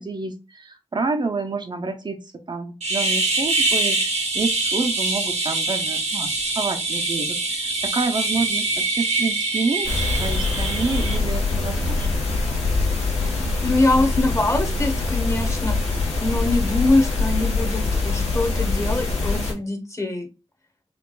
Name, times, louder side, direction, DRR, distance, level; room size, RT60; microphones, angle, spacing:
voice 1, 0.0-2.2 2.5-9.9 10.2-12.1, right 3 dB, 45° right, 5 dB, 0.4 m, -28 dB
sound 1, 2.8-11.2, right 3 dB, 85° right, 0.8 m, -24 dB
sound 2, 9.8-19.5, left 3 dB, 85° left, 1.2 m, -24 dB
voice 2, 13.6-20.3, left 2 dB, 25° left, 4 dB, 0.9 m, -23 dB
4.5 x 2.3 x 2.2 m, 0.29 s
wide cardioid pair, 70°, 11 cm